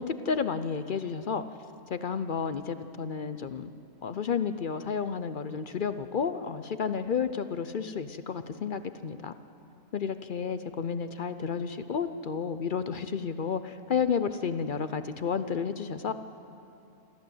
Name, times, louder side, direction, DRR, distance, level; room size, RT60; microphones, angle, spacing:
voice 1, 0.0-1.4 1.9-3.7 4.0-9.3 9.9-16.1, left 6 dB, 50° left, 11 dB, 0.6 m, -31 dB
26.5 x 14.0 x 7.8 m, 2.7 s
omnidirectional pair, 1.3 m